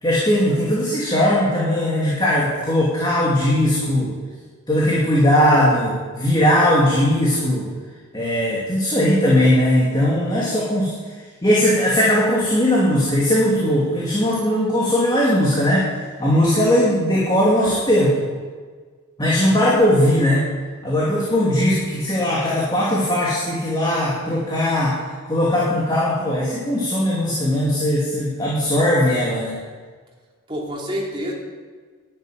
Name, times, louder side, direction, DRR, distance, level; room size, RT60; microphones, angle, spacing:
voice 1, 0.0-4.1 4.7-7.7 8.1-10.9 11.4-15.9 16.2-18.1 19.2-20.5 20.8-25.0 25.3-29.6, left 1 dB, 20° left, -6 dB, 2.7 m, -19 dB
voice 2, 30.5-31.3, equal, 25° right, -3 dB, 2.9 m, -28 dB
12.0 x 9.1 x 9.2 m, 1.5 s
head